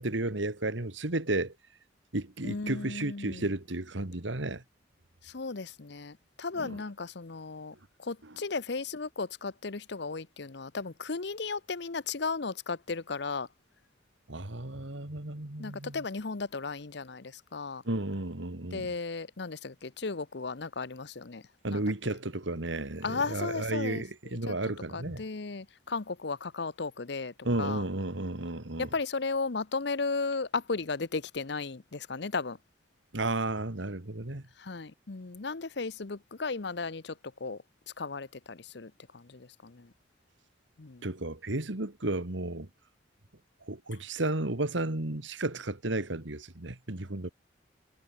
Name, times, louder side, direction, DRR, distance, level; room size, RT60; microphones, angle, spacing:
voice 1, 0.0-1.5 2.1-4.6 6.6-6.8 14.3-16.0 17.9-18.9 21.6-25.2 27.4-28.9 33.1-34.4 41.0-42.7 43.7-47.3, right 2 dB, 70° right, 2.1 m, -33 dB
voice 2, 2.4-3.5 5.2-13.5 15.6-17.8 18.7-21.8 23.0-24.0 24.5-24.6 24.9-27.8 28.8-32.6 34.6-37.6 38.0-39.9 40.8-41.0, left 4 dB, 60° left, 0.8 m, -35 dB
head